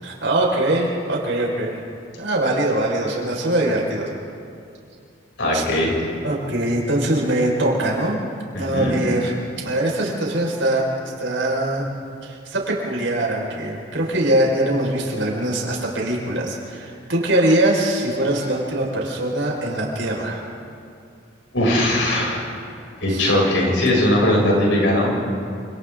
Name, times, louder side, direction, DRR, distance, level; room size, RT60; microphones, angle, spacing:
voice 1, 0.0-1.8 2.2-4.1 5.5-5.6 6.2-8.2 8.6-9.3 9.6-10.9 11.2-11.9 12.2-20.4 23.1-23.2, right 1 dB, 75° right, -2 dB, 5.3 m, -22 dB
voice 2, 5.4-5.9 8.5-9.0 21.5-22.4 23.0-25.3, left 1 dB, 80° left, -3 dB, 7.2 m, -19 dB
28.5 x 27.5 x 3.9 m, 2.4 s
head